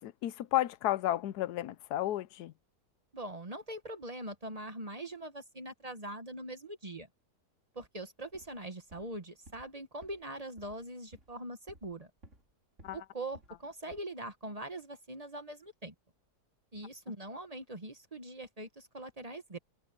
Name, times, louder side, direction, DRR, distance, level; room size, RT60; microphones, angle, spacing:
voice 1, 0.0-2.5 12.8-13.0, left 14 dB, 90° left, 1.2 m, -32 dB
voice 2, 3.1-7.1 7.7-12.1 12.9-15.9 16.7-19.6, right 1 dB, 25° right, 1.2 m, -42 dB
sound 1, 8.2-8.6 8.9-9.2 9.4-9.7 10.0-10.3 10.6-10.8 11.1-11.4 11.7-12.5 12.8-13.1 13.3-13.6 13.9-14.0, right 1 dB, 50° right, 4.5 m, -57 dB
omnidirectional pair, 1.6 m